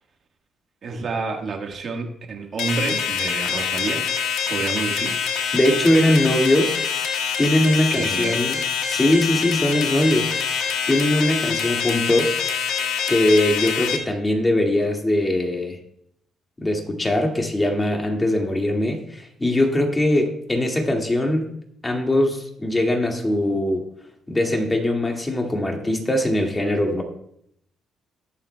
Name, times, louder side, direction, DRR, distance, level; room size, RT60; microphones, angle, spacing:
voice 1, 0.8-4.1 4.5-5.2 7.9-8.5, right 4 dB, 55° right, 4 dB, 1.5 m, -29 dB
sound 1, 2.6-14.0, left 7 dB, 90° left, 1.4 m, -25 dB
voice 2, 5.5-6.8 7.4-8.6 8.8-10.3 10.9-12.3 13.1-15.8 16.6-21.5 21.8-23.8 24.3-27.0, left 1 dB, 15° left, 1 dB, 1.9 m, -21 dB
20.5 x 7.1 x 2.2 m, 0.71 s
cardioid pair, 90°, 0 cm